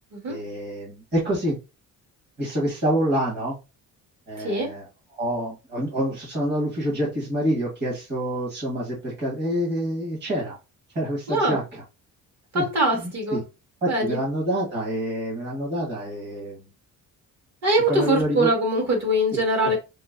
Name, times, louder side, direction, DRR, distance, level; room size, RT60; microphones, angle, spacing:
voice 1, 0.3-1.6 2.4-3.6 4.3-4.9 5.1-10.6 10.9-11.8 12.5-12.6 12.9-13.4 13.8-16.6 17.9-18.5 19.6-19.7, equal, 30° right, 1.5 m, -27 dB
voice 2, 4.4-4.7 11.3-11.6 12.5-13.4 13.8-14.2 17.6-19.8, right 1 dB, 50° right, 1.8 m, -22 dB
5.1 x 2.1 x 2.5 m
cardioid pair, 145°, 36 cm